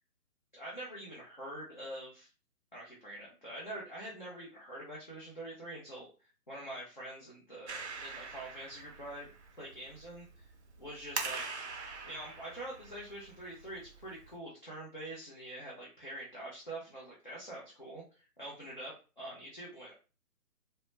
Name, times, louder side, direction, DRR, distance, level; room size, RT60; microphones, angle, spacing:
voice 1, 0.5-2.3 2.7-6.1 6.5-9.3 9.6-10.3 10.8-11.6 12.0-18.0 18.4-19.9, right 1 dB, 35° left, -5 dB, 0.5 m, -45 dB
Clapping, 7.7-14.4, right 4 dB, 50° right, 0.5 m, -44 dB
2.0 x 2.0 x 3.1 m, 0.34 s
figure-of-eight pair, 150°, 47 cm